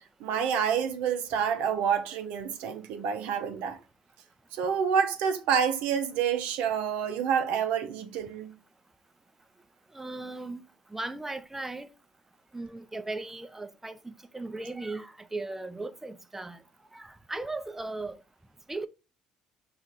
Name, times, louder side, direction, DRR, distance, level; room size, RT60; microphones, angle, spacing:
voice 1, 0.2-3.8 4.5-8.6, right 7 dB, 70° right, 0.5 m, -28 dB
voice 2, 9.9-10.6 10.9-11.9 12.5-16.6 16.9-18.2 18.7-18.9, right 2 dB, 10° right, 0.5 m, -37 dB
5.0 x 2.4 x 3.9 m
hypercardioid pair, 55°, 3 cm